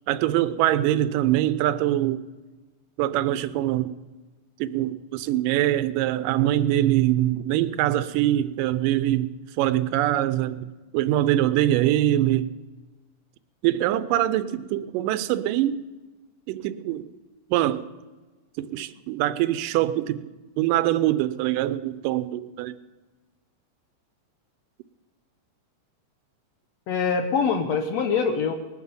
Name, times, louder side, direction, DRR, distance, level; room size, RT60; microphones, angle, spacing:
voice 1, 0.1-2.2 3.0-4.0 4.6-12.5 13.6-15.8 16.5-17.1 17.5-17.9 18.6-20.3 20.6-22.8, right 13 dB, 85° right, 2.2 m, -23 dB
voice 2, 26.9-28.5, left 5 dB, 70° left, 1.8 m, -24 dB
19.5 x 9.4 x 6.9 m
omnidirectional pair, 3.9 m